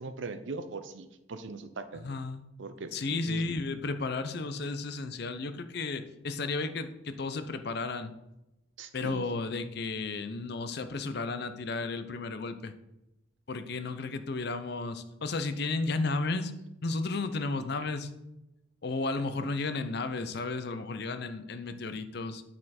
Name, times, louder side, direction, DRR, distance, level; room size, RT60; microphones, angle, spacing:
voice 1, 0.0-2.1 2.6-3.4 8.8-9.2, right 3 dB, 65° right, 10 dB, 0.6 m, -40 dB
voice 2, 2.0-2.5 2.9-8.1 8.9-12.7 13.5-16.5 16.8-18.1 18.8-22.4, left 3 dB, 50° left, 10 dB, 0.5 m, -33 dB
8.8 x 4.3 x 4.2 m, 0.90 s
head